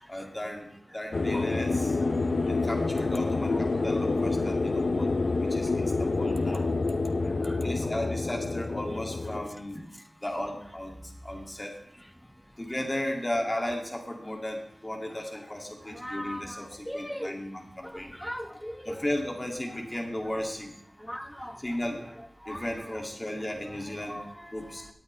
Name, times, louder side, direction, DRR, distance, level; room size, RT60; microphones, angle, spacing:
voice 1, 0.1-2.0 2.5-6.7 7.2-9.8 10.2-11.8 12.6-18.1 18.5-18.6 18.8-20.7 21.6-22.2 22.5-24.2 24.5-24.9, left 1 dB, 20° left, 1 dB, 2.5 m, -35 dB
sound 1, 1.1-9.5, left 3 dB, 70° left, 0.7 m, -28 dB
voice 2, 7.0-7.6 9.9-10.0 15.9-17.4 17.8-19.0 21.0-21.6 22.4-23.0 23.7-23.8 24.0-24.9, equal, 5° left, 6 dB, 1.1 m, -40 dB
17.5 x 8.8 x 3.4 m, 0.69 s
wide cardioid pair, 85°, 0 cm